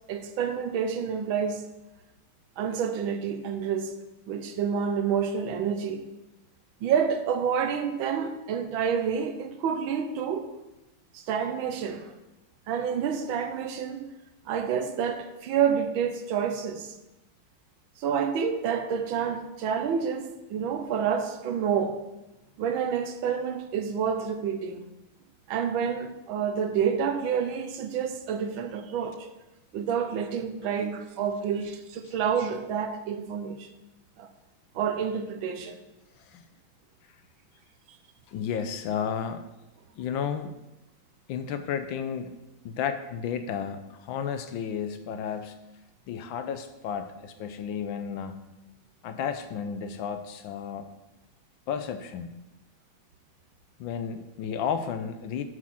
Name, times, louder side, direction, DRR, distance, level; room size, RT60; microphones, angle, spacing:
voice 1, 0.1-1.6 2.6-3.9 4.3-6.0 6.8-10.5 11.1-12.1 12.7-14.0 14.5-17.0 18.0-22.0 22.6-24.9 25.5-29.3 29.7-33.7 34.2-34.3 34.7-35.8, right 7 dB, 75° right, 1.4 m, -28 dB
voice 2, 38.3-39.5 40.0-40.5 41.3-42.3 42.6-45.6 46.1-48.4 49.0-50.9 51.7-52.3 53.8-55.4, left 7 dB, 75° left, 1.3 m, -32 dB
7.2 x 6.4 x 5.7 m
omnidirectional pair, 2.4 m